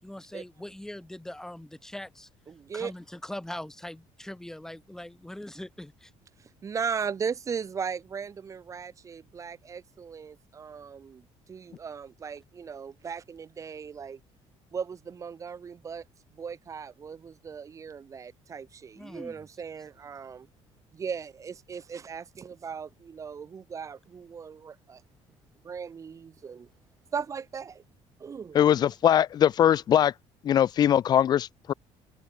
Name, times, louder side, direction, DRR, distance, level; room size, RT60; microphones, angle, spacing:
voice 1, 0.0-2.3 2.7-6.1 19.0-19.4, left 1 dB, 5° left, 7.7 m, -41 dB
voice 2, 2.5-2.9 6.4-14.2 14.7-16.1 16.3-20.5 20.9-25.0 25.6-26.7 27.1-27.8 28.2-28.7, right 6 dB, 25° right, 2.0 m, -37 dB
voice 3, 28.5-30.1 30.4-31.7, left 10 dB, 35° left, 0.5 m, -21 dB
cardioid pair, 165°, 12 cm